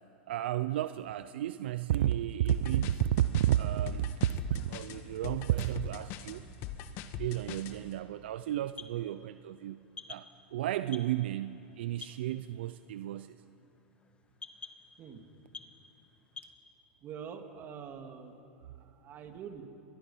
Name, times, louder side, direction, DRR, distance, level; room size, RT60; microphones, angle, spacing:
voice 1, 0.3-6.4 7.2-9.8 10.1-13.4, right 12 dB, 75° right, 13 dB, 0.5 m, -32 dB
sound 1, 2.5-7.8, left 10 dB, 45° left, 1.4 m, -41 dB
sound 2, 6.6-16.5, left 5 dB, 20° left, 1.3 m, -52 dB
voice 2, 17.0-18.3 18.6-19.6, right 7 dB, 35° right, 5 dB, 2.4 m, -45 dB
29.0 x 22.0 x 5.7 m, 2.9 s
supercardioid pair, 125°, 6 cm